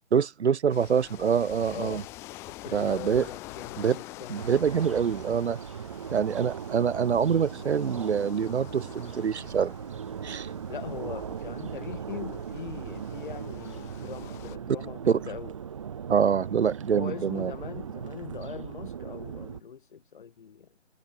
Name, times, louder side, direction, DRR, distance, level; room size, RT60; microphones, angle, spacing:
voice 1, 0.1-2.0 2.7-3.3 3.8-4.0 4.3-5.6 6.1-9.8 10.2-10.5 15.1-15.2 16.1-17.5, right 7 dB, 65° right, 0.7 m, -25 dB
sound 1, 0.7-14.6, left 19 dB, 5° left, 1.3 m, -47 dB
voice 2, 1.7-2.1 2.5-4.5 10.7-15.5 16.9-20.7, left 7 dB, 40° left, 4.3 m, -41 dB
sound 2, 4.3-19.6, right 8 dB, 25° right, 1.2 m, -39 dB
hypercardioid pair, 165°, 37 cm